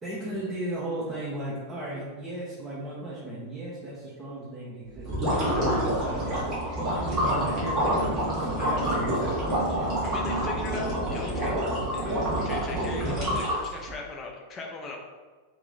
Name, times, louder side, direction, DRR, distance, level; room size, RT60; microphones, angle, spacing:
voice 1, 0.0-6.3 6.8-9.4 12.0-12.4, right 1 dB, 15° right, -8 dB, 0.9 m, -35 dB
sound 1, 5.0-13.9, right 1 dB, 35° right, 1.5 m, -27 dB
voice 2, 10.0-11.7 11.9-12.2 12.4-15.0, left 3 dB, 25° left, 0 dB, 0.7 m, -38 dB
3.0 x 2.9 x 3.8 m, 1.3 s
figure-of-eight pair, 90°, 0 cm